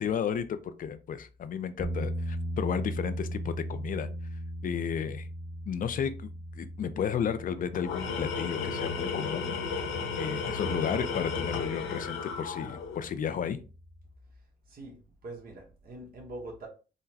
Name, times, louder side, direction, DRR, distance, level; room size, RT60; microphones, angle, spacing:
voice 1, 0.0-4.1 4.6-5.3 5.7-6.3 6.6-9.5 10.2-13.6, left 8 dB, 45° left, 0.4 m, -33 dB
sound 1, 1.8-14.1, equal, 30° left, 0.8 m, -39 dB
Tools, 7.7-13.1, left 5 dB, 90° left, 0.7 m, -33 dB
voice 2, 14.7-16.7, right 2 dB, 45° right, 1.0 m, -44 dB
3.8 x 2.1 x 2.7 m
cardioid pair, 90°, 20 cm